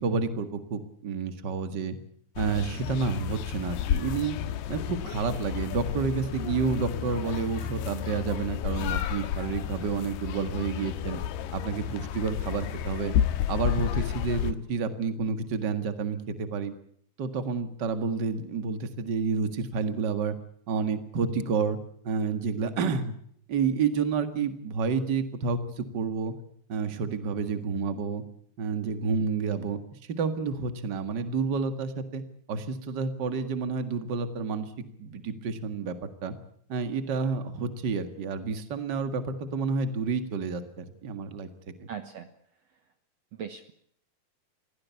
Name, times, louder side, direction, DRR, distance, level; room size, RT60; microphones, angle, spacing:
voice 1, 0.0-2.0 2.4-4.4 4.7-11.2 11.5-13.1 13.5-16.7 17.2-20.3 20.7-21.8 22.0-23.1 23.5-26.3 26.7-28.2 28.6-29.8 30.2-32.2 32.5-35.9 36.2-36.3 36.7-41.5 41.8-41.9, right 5 dB, 45° right, 9 dB, 1.5 m, -29 dB
sound 1, 2.4-14.5, left 10 dB, 85° left, 3.1 m, -31 dB
voice 2, 41.9-42.3 43.4-43.7, right 7 dB, 70° right, 9 dB, 1.6 m, -39 dB
23.5 x 16.5 x 8.3 m, 0.66 s
omnidirectional pair, 4.5 m